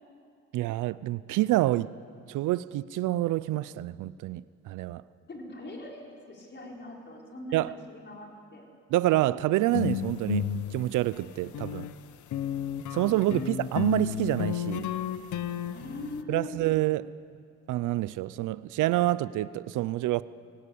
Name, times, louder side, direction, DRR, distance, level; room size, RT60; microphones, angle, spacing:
voice 1, 0.5-1.9 2.3-5.0 7.5-7.8 8.9-11.9 12.9-14.9 16.3-17.1 17.7-20.2, right 16 dB, 85° right, 0.5 m, -27 dB
voice 2, 5.3-8.6 15.7-16.6, left 2 dB, 35° left, 4.9 m, -41 dB
sound 1, 9.7-11.9 12.3-16.2, left 10 dB, 75° left, 1.0 m, -32 dB
24.0 x 18.0 x 8.5 m
cardioid pair, 90°, 30 cm